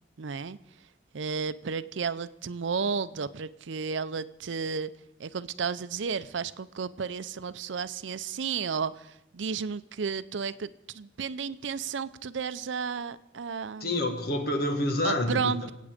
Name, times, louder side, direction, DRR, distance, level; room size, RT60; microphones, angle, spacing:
voice 1, 0.2-0.6 1.1-4.9 5.2-13.9 15.0-15.7, right 5 dB, 80° right, 15 dB, 0.5 m, -33 dB
voice 2, 13.8-15.7, left 1 dB, 55° left, 5 dB, 1.6 m, -28 dB
25.5 x 8.6 x 5.1 m, 0.88 s
head